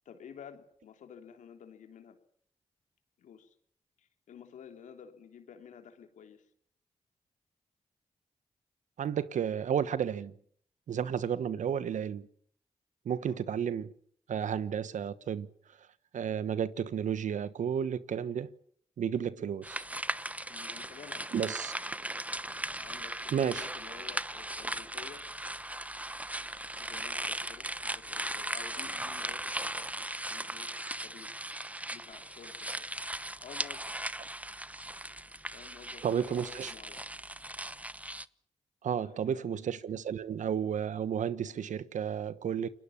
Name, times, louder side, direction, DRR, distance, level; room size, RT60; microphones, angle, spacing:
voice 1, 0.0-2.2 3.2-3.5 4.0-6.5 12.0-12.1 13.2-13.4 20.5-21.6 22.8-25.3 26.8-30.7 31.0-31.3 31.9-32.9 33.4-33.9 35.5-37.0 39.0-39.6, left 7 dB, 85° left, 3.3 m, -52 dB
voice 2, 9.0-10.3 10.9-12.3 13.0-13.9 14.3-15.5 16.1-18.5 19.0-19.8 21.3-21.7 23.3-23.6 36.0-36.7 38.8-42.7, right 8 dB, 75° right, 1.2 m, -32 dB
sound 1, 19.6-38.2, right 1 dB, 10° right, 1.1 m, -38 dB
29.5 x 20.0 x 7.3 m
supercardioid pair, 40°, 13 cm